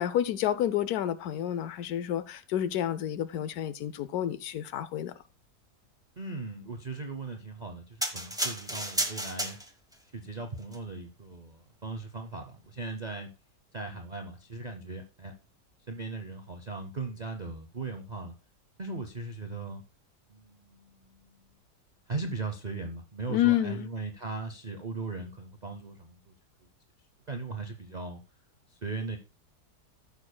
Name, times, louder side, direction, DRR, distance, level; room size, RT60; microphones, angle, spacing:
voice 1, 0.0-5.1 23.3-23.9, left 11 dB, 70° left, 1.0 m, -29 dB
voice 2, 6.2-9.6 10.1-13.3 13.7-15.3 15.9-18.4 18.8-19.8 20.3-21.5 22.1-26.3 27.3-28.2 28.8-29.2, right 3 dB, 55° right, 0.4 m, -38 dB
sound 1, 8.0-10.0 10.6-10.8, right 1 dB, 5° right, 0.7 m, -32 dB
14.5 x 6.6 x 2.2 m
omnidirectional pair, 1.8 m